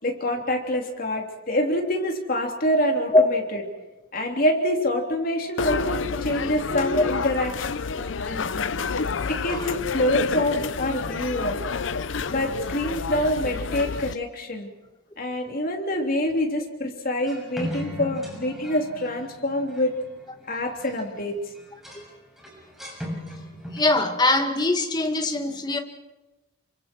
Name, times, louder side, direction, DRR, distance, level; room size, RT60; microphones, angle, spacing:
voice 1, 0.0-3.6 4.1-7.6 8.3-8.7 9.3-11.6 12.3-14.7 15.2-19.9 20.5-21.4, left 1 dB, 50° left, 3.5 m, -26 dB
sound 1, 5.6-14.1, left 5 dB, 80° left, 0.7 m, -29 dB
voice 2, 9.2-9.7 23.7-25.8, left 2 dB, 20° left, 1.9 m, -22 dB
sound 2, 17.2-21.2 21.6-22.0 22.4-23.9, equal, ahead, 6.4 m, -37 dB
29.0 x 25.0 x 4.6 m
head